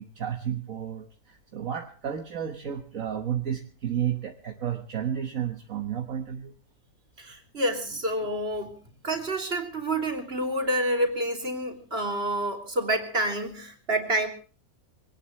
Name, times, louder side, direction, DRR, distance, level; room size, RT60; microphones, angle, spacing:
voice 1, 0.0-6.5, right 9 dB, 65° right, 5 dB, 1.7 m, -32 dB
voice 2, 7.2-8.7 9.0-14.3, right 1 dB, 45° right, 4 dB, 3.5 m, -28 dB
23.5 x 18.5 x 3.2 m, 0.36 s
omnidirectional pair, 1.5 m